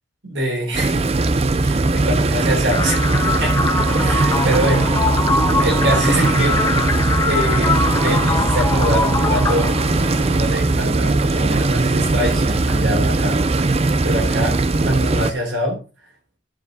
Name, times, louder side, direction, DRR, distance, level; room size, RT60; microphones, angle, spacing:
voice 1, 0.2-1.1 1.6-3.0 3.3-3.6 4.0-4.9 5.6-6.6 7.2-9.7 10.0-13.4 14.0-14.6 14.9-15.8, right 1 dB, 75° right, 0 dB, 3.7 m, -24 dB
sound 1, 0.7-15.3, right 2 dB, 30° right, 0.5 m, -19 dB
sound 2, 2.7-10.7, left 3 dB, 15° left, 0.6 m, -23 dB
12.0 x 5.2 x 3.9 m, 0.32 s
head